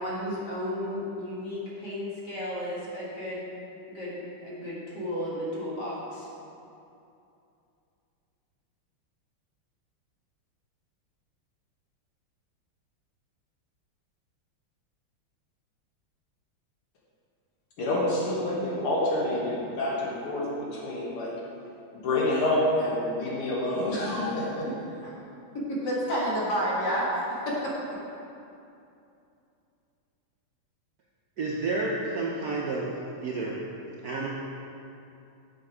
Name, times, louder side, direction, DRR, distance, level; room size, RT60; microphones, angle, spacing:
voice 1, 0.0-3.4 3.9-6.3 25.0-25.1 25.5-27.6, equal, 50° left, -6 dB, 2.3 m, -31 dB
voice 2, 17.8-21.3 21.9-24.7, left 1 dB, 90° left, -5 dB, 2.5 m, -28 dB
voice 3, 31.4-32.9 33.2-33.6 34.0-34.3, right 3 dB, 65° right, -4 dB, 0.9 m, -30 dB
7.4 x 6.3 x 4.9 m, 2.7 s
omnidirectional pair, 2.4 m